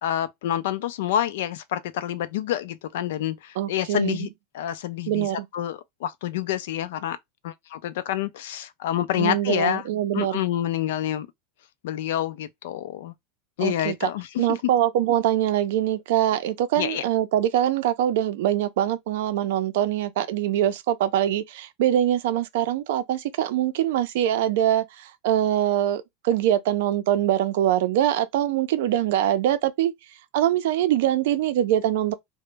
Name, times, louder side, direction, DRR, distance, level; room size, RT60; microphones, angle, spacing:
voice 1, 0.0-4.3 4.5-7.2 7.4-9.9 10.1-11.3 11.8-13.1 13.6-14.6 16.8-17.0, left 12 dB, 75° left, 0.4 m, -28 dB
voice 2, 3.6-4.2 5.1-5.5 9.2-10.4 13.6-14.1 14.4-29.9 30.3-32.1, right 12 dB, 70° right, 0.4 m, -23 dB
2.1 x 2.0 x 3.2 m
supercardioid pair, 150°, 0 cm